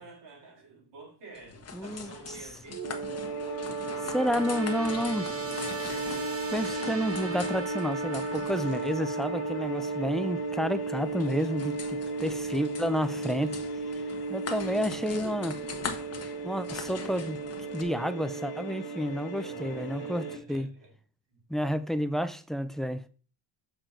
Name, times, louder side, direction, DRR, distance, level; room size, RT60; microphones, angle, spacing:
voice 1, 0.0-2.8 19.2-20.9 21.3-21.4, right 3 dB, 60° right, 3.8 m, -49 dB
sound 1, 1.3-17.8, left 6 dB, 35° left, 1.3 m, -43 dB
voice 2, 1.7-2.4 4.0-5.3 6.5-13.6 14.3-15.6 16.4-17.4 17.7-20.7 21.5-23.0, equal, ahead, 0.4 m, -30 dB
sound 2, 2.7-20.3, right 4 dB, 30° right, 1.1 m, -34 dB
sound 3, 3.2-20.4, left 9 dB, 55° left, 1.0 m, -48 dB
7.0 x 5.8 x 3.8 m
cardioid pair, 120°, 46 cm